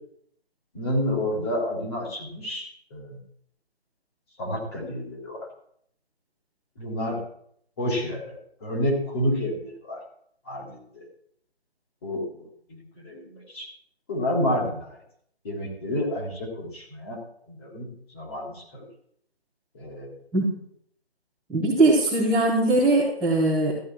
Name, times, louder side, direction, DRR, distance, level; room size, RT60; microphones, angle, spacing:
voice 1, 0.7-3.2 4.4-5.5 6.8-7.2 7.8-10.0 10.4-10.7 10.9-11.0 12.0-13.7 14.1-15.0 15.4-17.2 17.5-18.8 19.7-20.1, left 1 dB, 25° left, -2 dB, 3.2 m, -29 dB
voice 2, 21.5-23.7, right 2 dB, 5° right, -12 dB, 1.1 m, -20 dB
14.5 x 8.6 x 4.5 m, 0.67 s
figure-of-eight pair, 165°, 31 cm